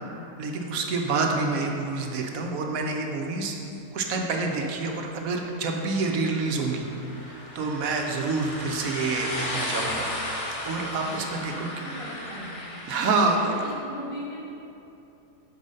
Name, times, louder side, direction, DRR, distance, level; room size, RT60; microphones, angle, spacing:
voice 1, 0.0-3.6 3.9-6.9 7.1-11.7 12.9-13.6, right 3 dB, 75° right, 2 dB, 1.1 m, -28 dB
sound 1, 5.6-13.7, left 1 dB, 30° left, 0.7 m, -35 dB
voice 2, 10.8-14.4, equal, 25° right, -7 dB, 0.7 m, -40 dB
5.5 x 4.7 x 6.4 m, 2.8 s
omnidirectional pair, 1.5 m